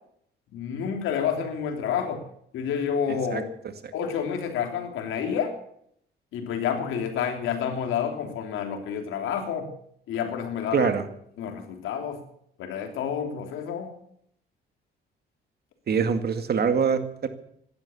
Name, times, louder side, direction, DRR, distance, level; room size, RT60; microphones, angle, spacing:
voice 1, 0.5-2.2 2.5-3.4 3.9-5.5 6.3-9.7 10.1-10.9 11.4-12.2 12.6-13.9, left 7 dB, 85° left, 5 dB, 3.3 m, -29 dB
voice 2, 3.1-3.4 3.8-3.9 10.7-11.0 15.9-17.3, right 6 dB, 55° right, 9 dB, 2.1 m, -24 dB
16.5 x 12.0 x 7.2 m, 0.69 s
cardioid pair, 90°, 20 cm